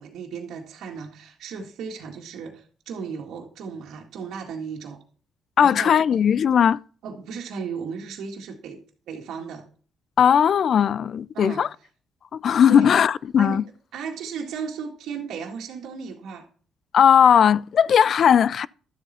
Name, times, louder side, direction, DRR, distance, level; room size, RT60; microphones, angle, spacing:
voice 1, 0.0-5.0 5.6-6.0 7.0-8.8 9.1-9.7 11.3-11.6 12.7-12.9 13.4-13.6 13.9-16.5, right 6 dB, 80° right, 1.9 m, -35 dB
voice 2, 5.6-6.8 10.2-11.7 12.3-13.6 16.9-18.7, left 8 dB, 60° left, 0.4 m, -18 dB
12.0 x 7.9 x 4.2 m
cardioid pair, 90°, 0 cm